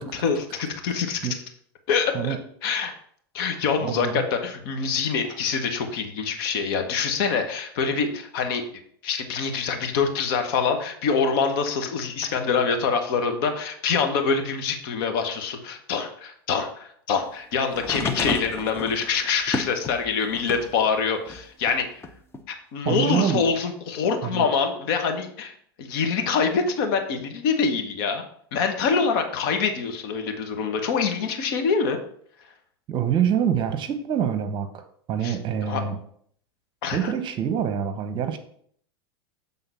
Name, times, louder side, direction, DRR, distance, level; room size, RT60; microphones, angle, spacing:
voice 1, 0.0-1.2 1.9-2.3 2.6-2.9 3.3-8.6 9.0-22.0 22.7-25.5 25.8-28.2 28.5-32.0 35.2-35.4 35.7-35.8 36.8-37.1, left 5 dB, 60° left, 6 dB, 1.4 m, -25 dB
voice 2, 3.8-4.2 5.2-5.4 22.8-23.4 24.2-24.5 32.9-36.0 36.9-38.4, right 8 dB, 35° right, 9 dB, 1.0 m, -26 dB
sound 1, 17.7-20.8 21.3-22.4 23.4-23.5, left 3 dB, 20° left, 0.8 m, -31 dB
7.9 x 3.8 x 5.6 m, 0.62 s
hypercardioid pair, 100°, 13 cm